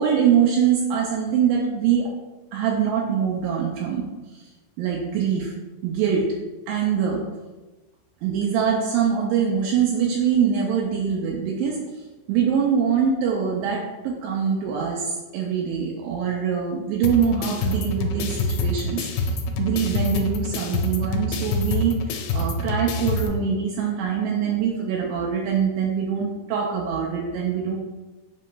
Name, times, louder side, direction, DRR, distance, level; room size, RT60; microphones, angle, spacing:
voice 1, 0.0-2.1 2.5-4.1 4.8-5.5 5.8-6.3 6.7-7.2 8.2-11.8 12.3-27.8, right 7 dB, 85° right, -2 dB, 2.0 m, -23 dB
sound 1, 17.0-23.3, left 2 dB, 85° left, 2.4 m, -26 dB
7.4 x 2.9 x 2.2 m, 1.2 s
omnidirectional pair, 4.5 m